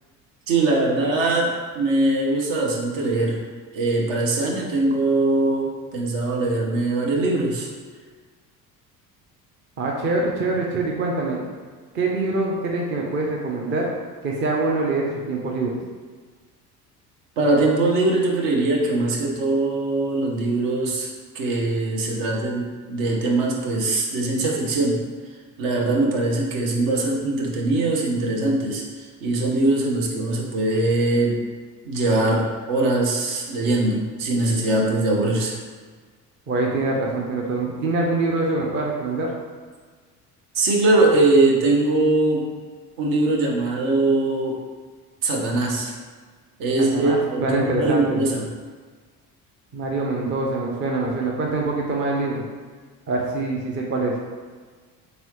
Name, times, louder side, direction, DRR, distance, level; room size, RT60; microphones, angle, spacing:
voice 1, 0.5-3.4 3.7-7.7 17.4-21.1 21.3-25.0 25.6-31.4 31.8-35.6 40.5-42.5 43.0-44.6 45.2-45.9 46.6-48.5, right 2 dB, 55° right, -1 dB, 0.8 m, -21 dB
voice 2, 9.8-11.5 11.9-13.9 14.2-15.8 36.5-39.3 46.8-48.2 49.7-52.4 53.1-54.2, right 2 dB, 25° right, -1 dB, 0.5 m, -24 dB
3.7 x 3.0 x 3.1 m, 1.5 s
figure-of-eight pair, 60°, 47 cm